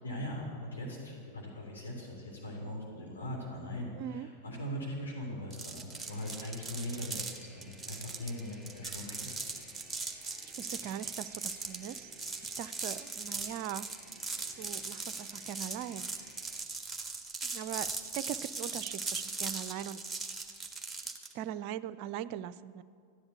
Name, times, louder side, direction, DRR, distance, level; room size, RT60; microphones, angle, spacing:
voice 1, 0.0-9.3 10.5-11.0, left 1 dB, 75° left, -3 dB, 3.3 m, -40 dB
voice 2, 4.0-4.3 10.4-12.1 12.4-13.9 14.6-16.1 17.4-20.0 21.3-22.8, right 11 dB, 45° right, 16 dB, 0.5 m, -40 dB
sound 1, 5.5-21.3, right 3 dB, 5° right, 1.5 m, -39 dB
sound 2, 6.0-16.6, equal, 15° left, 2.2 m, -58 dB
14.0 x 10.5 x 8.0 m, 2.3 s
figure-of-eight pair, 90°, 0 cm